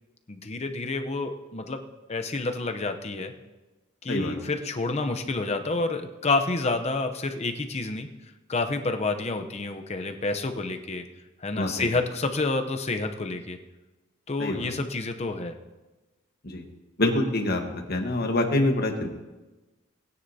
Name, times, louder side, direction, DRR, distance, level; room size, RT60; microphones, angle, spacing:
voice 1, 0.3-1.8 2.1-3.3 4.0-8.1 8.5-11.0 11.4-13.6 14.3-15.5, left 3 dB, 30° left, 6 dB, 0.7 m, -29 dB
voice 2, 11.5-11.9 14.4-14.7 16.4-16.6 17.0-19.1, left 1 dB, 50° left, 3 dB, 1.3 m, -26 dB
20.0 x 9.7 x 2.8 m, 1.1 s
head